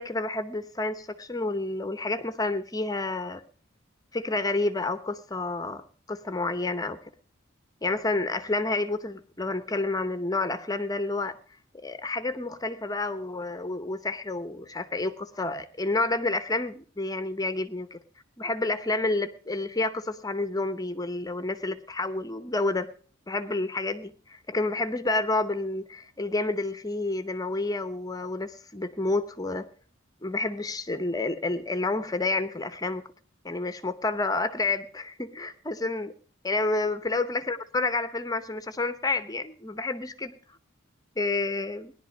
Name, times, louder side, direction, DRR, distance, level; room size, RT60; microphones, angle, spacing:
voice 1, 0.0-3.4 4.1-5.8 6.1-7.0 7.8-11.4 11.7-18.0 18.4-22.9 23.3-29.7 30.2-33.0 33.4-36.1 36.4-40.4 41.2-41.9, left 2 dB, 20° left, 0.8 m, -29 dB
18.5 x 11.0 x 5.2 m
head